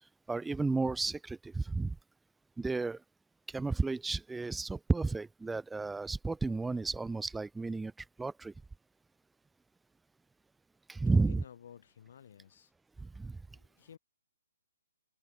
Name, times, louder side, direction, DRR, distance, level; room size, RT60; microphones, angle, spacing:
voice 1, 0.3-2.0 2.6-3.0 3.5-7.9 8.2-8.5 10.9-11.4 13.0-13.4, right 3 dB, 5° right, 0.3 m, -32 dB
voice 2, 11.1-12.7 13.5-14.0, left 8 dB, 55° left, 4.8 m, -54 dB
hypercardioid pair, 165°, 0 cm